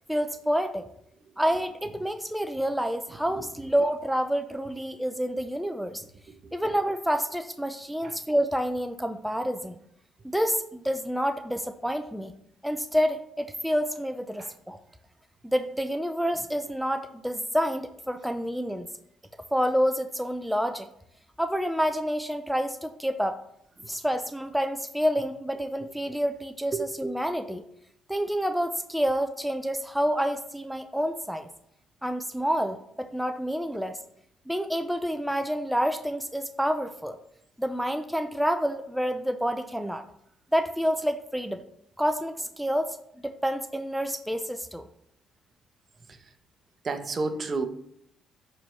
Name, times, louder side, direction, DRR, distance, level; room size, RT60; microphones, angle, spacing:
voice 1, 0.1-0.8 1.4-6.0 6.5-9.8 10.3-12.3 12.6-14.8 15.4-18.9 19.5-20.9 21.4-23.4 23.9-27.6 28.1-31.5 32.0-34.0 34.5-37.2 37.6-40.0 40.5-41.6 42.0-44.9, equal, ahead, 0.6 m, -28 dB
voice 2, 46.8-47.6, right 3 dB, 40° right, 1.0 m, -29 dB
11.5 x 4.6 x 3.3 m
supercardioid pair, 70°, 0 cm